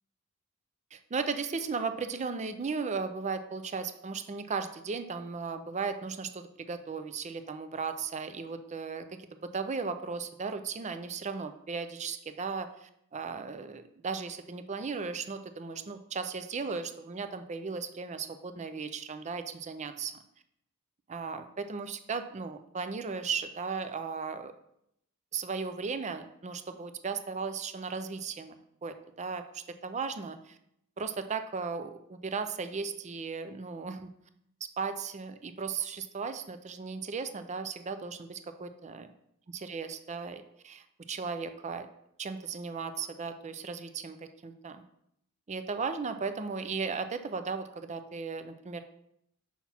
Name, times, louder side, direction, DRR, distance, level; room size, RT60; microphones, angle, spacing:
voice 1, 0.9-20.1 21.1-24.5 25.3-28.6 28.8-30.6 31.0-34.1 34.8-39.0 39.5-41.9 42.2-44.2 44.4-44.8 45.5-48.8, right 5 dB, 35° right, 9 dB, 0.5 m, -36 dB
6.0 x 5.8 x 4.2 m, 0.76 s
head